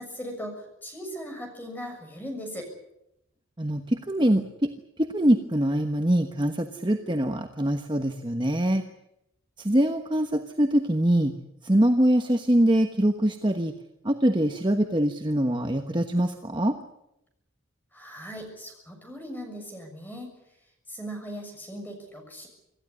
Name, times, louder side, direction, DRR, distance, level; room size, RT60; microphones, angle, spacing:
voice 1, 0.0-2.7 17.9-20.3 20.9-22.5, equal, 10° left, 3 dB, 6.7 m, -38 dB
voice 2, 3.6-4.7 5.0-8.8 9.6-11.3 11.6-13.7 14.0-16.8, right 1 dB, 20° right, 5 dB, 1.2 m, -23 dB
26.5 x 15.0 x 9.9 m, 0.84 s
head